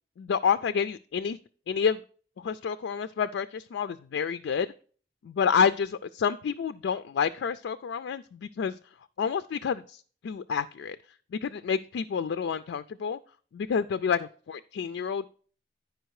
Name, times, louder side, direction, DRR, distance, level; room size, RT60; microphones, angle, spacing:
voice 1, 0.2-1.4 1.7-2.0 2.4-4.7 5.2-8.8 9.2-11.0 11.3-13.2 13.5-14.2 14.5-15.3, left 6 dB, 85° left, 11 dB, 0.3 m, -28 dB
10.0 x 4.9 x 4.7 m, 0.43 s
head